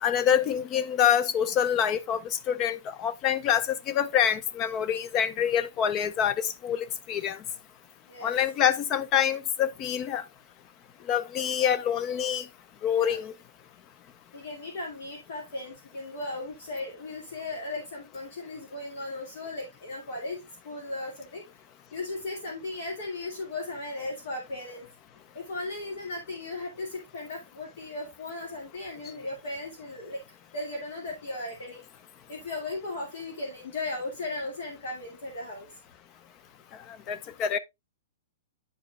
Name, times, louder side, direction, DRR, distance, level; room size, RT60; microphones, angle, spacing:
voice 1, 0.0-7.4 8.2-10.2 11.1-12.4 12.8-13.3 37.1-37.6, left 9 dB, 20° left, 0.4 m, -26 dB
voice 2, 8.1-8.4 12.9-13.2 14.3-20.4 20.6-21.4 21.9-24.9 25.3-30.2 30.5-31.8 32.3-35.7, left 2 dB, 55° left, 2.2 m, -36 dB
9.8 x 5.0 x 2.4 m
hypercardioid pair, 175°, 0 cm